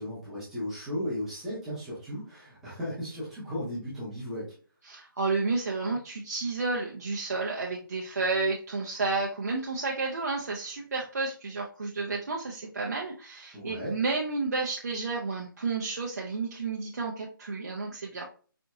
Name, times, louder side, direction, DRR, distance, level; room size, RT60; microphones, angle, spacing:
voice 1, 0.0-4.5 13.5-13.9, left 1 dB, 5° right, -10 dB, 0.8 m, -35 dB
voice 2, 4.8-18.2, right 3 dB, 45° right, -2 dB, 0.5 m, -31 dB
4.3 x 2.7 x 2.3 m, 0.40 s
hypercardioid pair, 170°, 12 cm